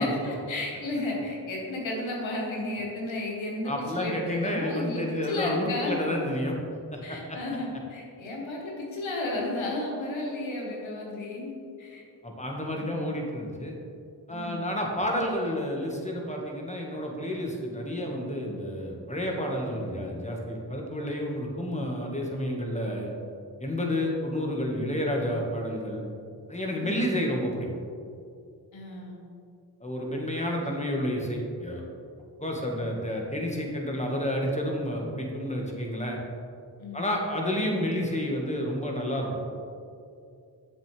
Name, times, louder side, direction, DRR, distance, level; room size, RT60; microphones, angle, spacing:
voice 1, 0.0-6.0 7.0-11.5 11.8-12.0 12.7-13.0 14.3-14.7 26.8-27.1 28.7-29.2 36.8-37.1, left 2 dB, 90° left, -2 dB, 1.6 m, -33 dB
voice 2, 3.6-6.6 6.9-7.0 12.2-13.8 14.3-23.1 23.6-26.0 26.5-27.7 29.8-31.8 32.4-36.2 36.9-39.4, equal, 15° left, 0 dB, 1.7 m, -30 dB
7.3 x 7.1 x 3.4 m, 2.5 s
cardioid pair, 40°, 45 cm